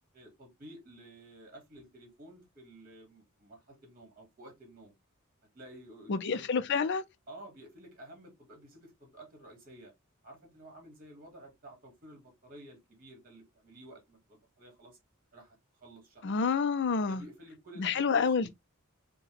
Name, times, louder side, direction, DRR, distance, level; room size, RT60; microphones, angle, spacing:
voice 1, 0.1-4.9 5.5-6.6 7.3-9.9 10.2-15.0 15.3-16.3 17.1-18.5, right 1 dB, 45° right, 1.8 m, -52 dB
voice 2, 6.1-7.0 16.2-17.2 17.8-18.5, left 5 dB, 55° left, 0.5 m, -28 dB
4.6 x 2.2 x 3.3 m
head